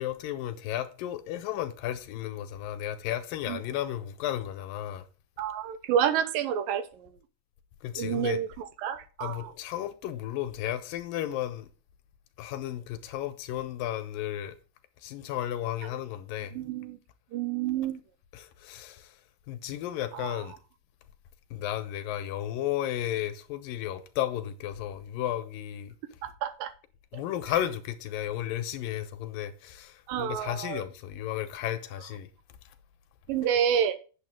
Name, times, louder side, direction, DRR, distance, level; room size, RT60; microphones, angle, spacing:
voice 1, 0.0-5.1 7.8-8.4 9.2-11.7 12.4-14.6 15.0-16.6 18.3-19.2 19.5-20.6 21.5-26.0 27.1-32.3 32.7-32.8, left 12 dB, 90° left, 2.6 m, -33 dB
voice 2, 5.4-7.1 8.0-9.5 16.5-17.0 17.3-18.0 20.1-20.4 26.2-26.7 30.1-30.8 33.3-34.0, right 9 dB, 80° right, 2.6 m, -29 dB
8.6 x 7.8 x 3.6 m
omnidirectional pair, 4.0 m